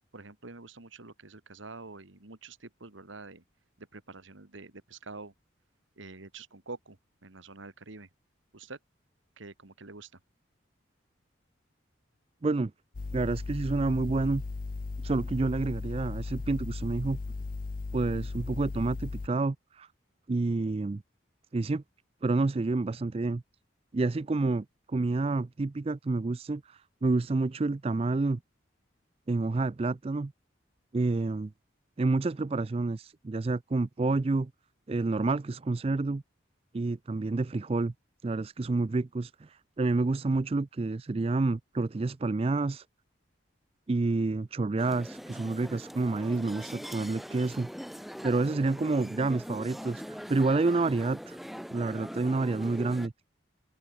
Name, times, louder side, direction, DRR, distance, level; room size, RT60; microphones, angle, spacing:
voice 1, 0.1-3.4 3.8-5.3 6.0-7.0 7.2-8.1 8.5-8.8 9.4-10.1, right 3 dB, 85° right, 2.0 m, -46 dB
sound 1, 12.9-19.3, left 3 dB, 45° left, 0.4 m, -36 dB
voice 2, 13.1-14.4 15.0-17.2 17.9-19.9 20.3-21.0 21.5-21.8 22.2-23.4 23.9-28.4 29.3-30.3 30.9-31.5 32.0-34.5 34.9-36.2 36.7-37.9 38.2-42.9 43.9-47.7 48.2-51.4 51.7-53.1, right 3 dB, 30° right, 0.4 m, -29 dB
sound 2, 44.8-53.1, equal, ahead, 6.7 m, -42 dB
open air
head